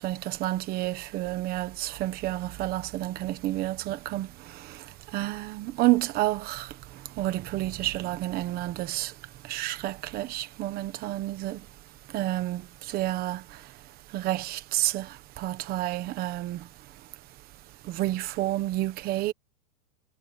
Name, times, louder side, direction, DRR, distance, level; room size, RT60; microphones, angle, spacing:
voice 1, 0.0-4.3 5.1-6.7 7.2-9.1 9.5-11.6 12.1-12.6 12.9-13.4 14.1-15.1 15.4-16.6 17.9-19.3, right 16 dB, 20° right, 1.1 m, -29 dB
supercardioid pair, 170°, 45 cm